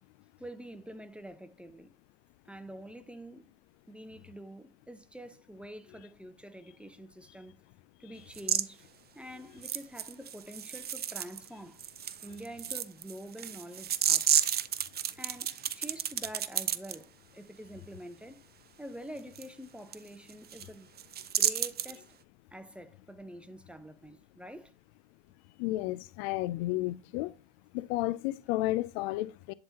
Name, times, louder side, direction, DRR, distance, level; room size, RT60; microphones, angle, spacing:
voice 1, 0.4-1.9 2.5-3.5 3.9-7.6 8.0-8.9 9.1-11.9 12.2-14.3 15.2-18.4 18.8-20.9 21.3-22.2 22.5-24.7, right 1 dB, 5° right, 0.8 m, -46 dB
sound 1, 8.3-8.6 9.6-11.5 11.8-16.9 19.4-19.5 19.9-20.0 20.3-20.7 21.0-22.0, right 9 dB, 30° right, 0.6 m, -31 dB
voice 2, 25.6-27.3 27.7-29.5, left 17 dB, 65° left, 0.4 m, -32 dB
10.5 x 3.9 x 2.8 m
hypercardioid pair, 70°, 34 cm